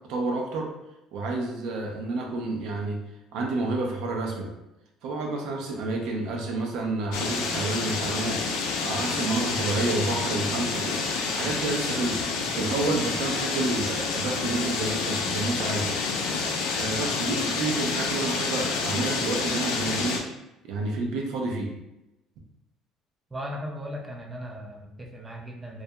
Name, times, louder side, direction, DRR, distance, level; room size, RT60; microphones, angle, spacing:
voice 1, 0.1-0.7 1.1-3.0 3.3-4.5 5.0-11.0 11.3-12.2 12.5-16.0 16.8-20.2 20.7-21.7, right 2 dB, 75° right, 1 dB, 0.5 m, -29 dB
sound 1, 7.1-20.2, left 4 dB, 85° left, 0.4 m, -28 dB
voice 2, 23.3-25.8, equal, 15° right, -1 dB, 0.4 m, -37 dB
2.3 x 2.1 x 2.7 m, 0.93 s
cardioid pair, 110°, 0 cm